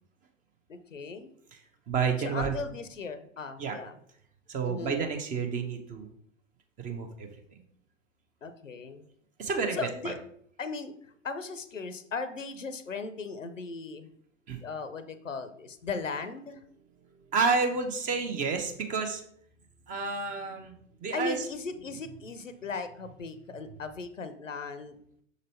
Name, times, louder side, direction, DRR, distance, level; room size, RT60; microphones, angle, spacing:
voice 1, 0.7-1.3 2.2-4.0 4.6-5.0 8.4-9.1 9.7-10.2 10.6-10.9 11.2-14.1 14.6-16.6 21.1-25.0, left 4 dB, 85° left, 11 dB, 0.7 m, -37 dB
voice 2, 1.9-2.6 3.6-3.8 4.5-6.1 6.8-7.3 9.4-9.8 10.0-10.1 14.5-14.6 17.3-19.2 19.9-20.7 21.0-21.5, right 5 dB, 20° right, 5 dB, 0.8 m, -30 dB
6.2 x 4.1 x 4.2 m, 0.66 s
figure-of-eight pair, 100°, 37 cm